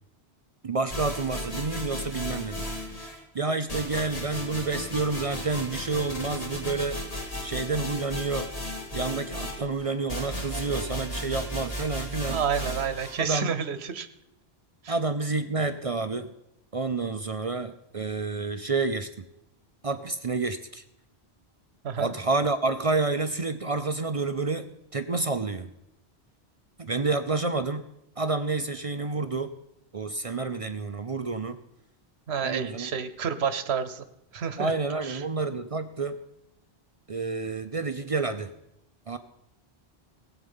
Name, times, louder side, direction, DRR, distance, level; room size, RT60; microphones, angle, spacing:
voice 1, 0.6-3.0 3.3-7.0 7.4-8.5 8.9-12.4 13.2-13.5 14.9-16.3 16.7-19.1 19.8-20.8 22.0-24.7 24.9-25.7 26.8-27.8 28.2-29.5 29.9-31.6 32.4-32.9 34.6-36.2 37.1-38.5 39.1-39.2, right 3 dB, 40° right, 9 dB, 0.6 m, -29 dB
sound 1, 0.9-3.2 3.7-13.2, equal, 35° left, 2.2 m, -35 dB
voice 2, 12.3-14.1 14.8-15.0 21.8-22.1 32.3-34.0 34.3-34.7 35.0-35.2, right 7 dB, 80° right, 12 dB, 1.2 m, -29 dB
17.5 x 8.1 x 5.5 m, 0.84 s
omnidirectional pair, 1.1 m